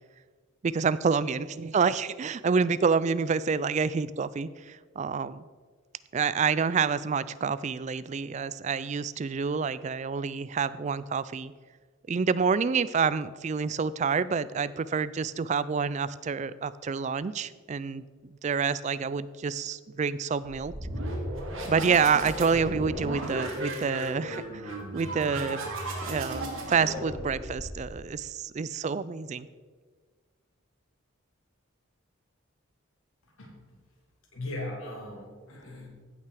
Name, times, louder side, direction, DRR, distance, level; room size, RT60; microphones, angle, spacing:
voice 1, 0.6-5.5 6.1-11.5 12.1-20.7 21.7-25.7 26.0-29.5, right 5 dB, 35° right, 17 dB, 0.3 m, -28 dB
sound 1, 20.6-28.1, right 1 dB, 75° right, 2.4 m, -35 dB
voice 2, 33.2-33.8 34.3-35.9, left 1 dB, 90° left, -1 dB, 3.0 m, -39 dB
15.5 x 5.7 x 4.9 m, 1.5 s
head